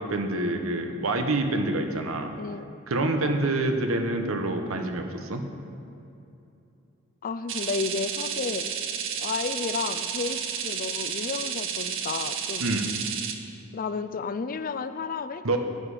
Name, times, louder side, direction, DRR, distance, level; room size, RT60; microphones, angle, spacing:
voice 1, 0.0-2.3 2.9-5.5 12.6-12.9 15.4-15.6, right 2 dB, 90° right, 5 dB, 1.0 m, -27 dB
voice 2, 7.2-8.7 9.2-12.7 13.7-15.5, left 4 dB, 45° left, 11 dB, 0.4 m, -32 dB
sound 1, 7.5-13.3, right 8 dB, 65° right, 0.8 m, -31 dB
10.5 x 9.9 x 4.9 m, 2.7 s
head